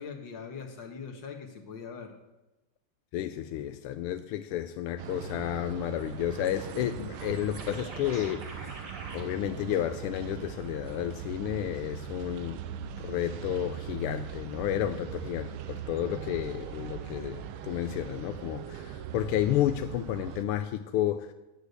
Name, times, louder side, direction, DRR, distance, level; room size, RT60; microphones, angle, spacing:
voice 1, 0.0-2.1, left 5 dB, 60° left, 2.1 m, -41 dB
voice 2, 3.1-8.8 9.1-12.6 13.0-21.3, left 12 dB, 80° left, 1.5 m, -31 dB
sound 1, 5.0-20.4, right 9 dB, 75° right, 1.6 m, -40 dB
sound 2, 7.6-9.2, right 2 dB, 50° right, 2.8 m, -44 dB
11.0 x 8.3 x 8.1 m
omnidirectional pair, 2.4 m